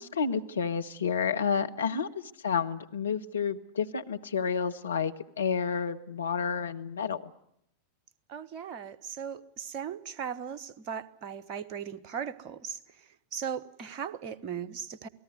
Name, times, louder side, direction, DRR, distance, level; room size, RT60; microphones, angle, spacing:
voice 1, 0.0-7.3, left 6 dB, 70° left, 6 dB, 1.2 m, -30 dB
voice 2, 8.3-12.8 13.3-15.1, right 7 dB, 40° right, 13 dB, 1.2 m, -38 dB
27.5 x 18.5 x 9.5 m, 0.78 s
figure-of-eight pair, 90°, 0 cm